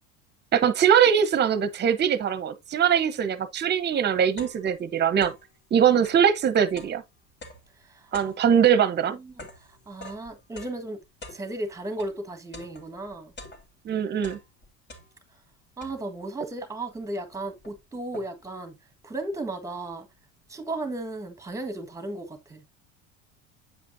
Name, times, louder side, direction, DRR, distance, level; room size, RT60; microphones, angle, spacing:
voice 1, 0.5-5.3 5.7-7.0 8.1-9.2 13.8-14.4, right 8 dB, 30° right, 1.0 m, -22 dB
sound 1, 3.9-5.6 5.9-12.2 12.5-13.9 14.2-15.4 15.8-16.3 17.0-17.1 17.3-18.6, left 2 dB, 30° left, 2.2 m, -46 dB
voice 2, 7.8-8.5 9.1-11.0 11.3-13.3 15.8-18.8 19.0-20.1 20.5-22.7, right 2 dB, 10° right, 1.5 m, -35 dB
8.4 x 5.1 x 2.6 m
supercardioid pair, 115°, 33 cm